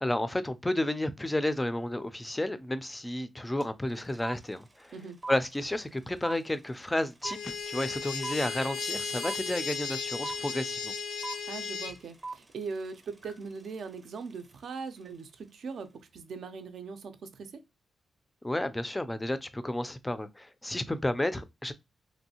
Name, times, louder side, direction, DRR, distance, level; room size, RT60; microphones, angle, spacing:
voice 1, 0.0-4.9 5.3-10.9 18.4-21.7, left 1 dB, 10° left, 0.3 m, -32 dB
sound 1, 3.6-3.7 3.9-15.1, right 3 dB, 20° right, 0.6 m, -43 dB
sound 2, 7.2-11.9, left 5 dB, 80° left, 0.5 m, -35 dB
voice 2, 11.5-17.6, right 5 dB, 70° right, 0.5 m, -40 dB
3.0 x 2.6 x 2.7 m
cardioid pair, 115°, 0 cm